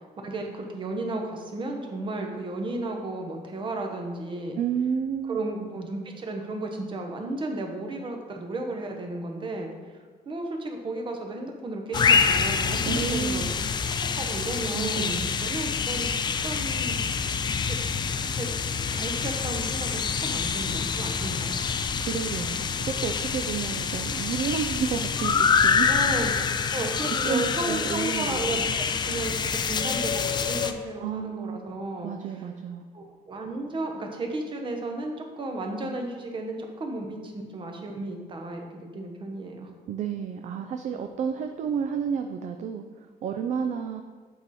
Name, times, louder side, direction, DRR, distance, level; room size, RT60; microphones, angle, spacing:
voice 1, 0.2-4.6 5.3-10.0 10.3-13.5 14.0-16.1 16.4-17.2 17.7-17.8 18.1-18.5 18.8-21.8 22.5-22.7 25.9-26.4 26.7-32.1 32.9-39.7, right 2 dB, 30° right, 2 dB, 1.0 m, -34 dB
voice 2, 4.5-5.4 12.9-13.5 14.7-15.5 22.0-25.9 26.8-27.0 27.2-28.8 31.0-31.6 32.0-32.9 39.9-44.0, right 7 dB, 50° right, 6 dB, 0.4 m, -31 dB
sound 1, 11.9-30.7, left 6 dB, 30° left, 0.3 m, -26 dB
7.9 x 4.8 x 4.2 m, 1.5 s
cardioid pair, 145°, 16 cm